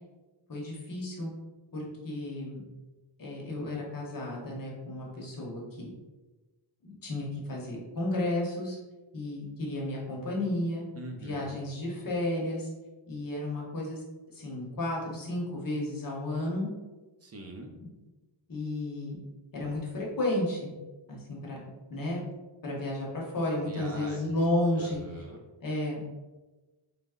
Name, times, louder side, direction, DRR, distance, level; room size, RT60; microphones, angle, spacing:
voice 1, 0.5-1.3 1.7-2.6 3.2-5.9 6.8-8.8 9.1-10.8 11.2-12.7 13.1-14.0 14.3-16.7 17.8-17.9 18.5-19.2 19.5-20.7 21.1-21.6 21.9-22.2 22.6-25.0 25.6-26.0, left 1 dB, 45° left, -3 dB, 0.9 m, -32 dB
voice 2, 11.0-11.6 17.2-17.7 23.5-24.4 24.8-25.4, right 1 dB, 35° right, 2 dB, 0.4 m, -43 dB
3.3 x 2.0 x 3.6 m, 1.2 s
wide cardioid pair, 180°, 48 cm